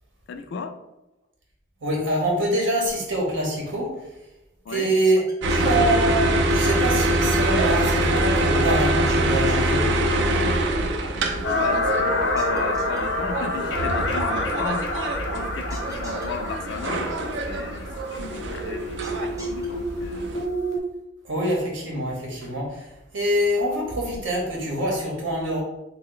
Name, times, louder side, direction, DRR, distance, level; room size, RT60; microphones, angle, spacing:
voice 1, 0.3-0.7 4.7-4.9 11.5-14.9 15.3-20.3, left 5 dB, 65° left, 8 dB, 0.3 m, -35 dB
voice 2, 1.8-4.0 4.7-5.2 5.5-9.9 21.2-22.8 23.1-25.6, right 1 dB, 90° right, -2 dB, 0.9 m, -25 dB
sound 1, 5.0-5.8 9.1-9.7 12.4-13.0 15.7-16.3 19.0-19.7, right 1 dB, 15° right, 0.5 m, -43 dB
sound 2, 5.4-20.5, right 1 dB, 65° right, 0.4 m, -24 dB
sound 3, 11.4-20.8, left 1 dB, 85° left, 0.8 m, -28 dB
3.1 x 2.1 x 3.8 m, 0.93 s
head